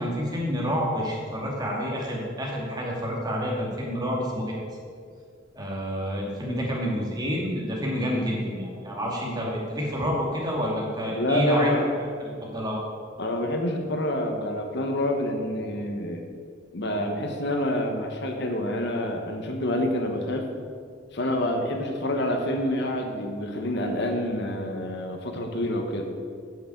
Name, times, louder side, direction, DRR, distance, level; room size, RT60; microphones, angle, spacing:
voice 1, 0.0-4.5 5.5-11.7 12.2-12.8, equal, 20° right, -3 dB, 2.4 m, -28 dB
voice 2, 11.1-11.9 13.2-16.2 16.7-20.5 21.1-26.0, left 1 dB, 65° left, 3 dB, 1.2 m, -27 dB
8.4 x 6.8 x 8.5 m, 2.1 s
head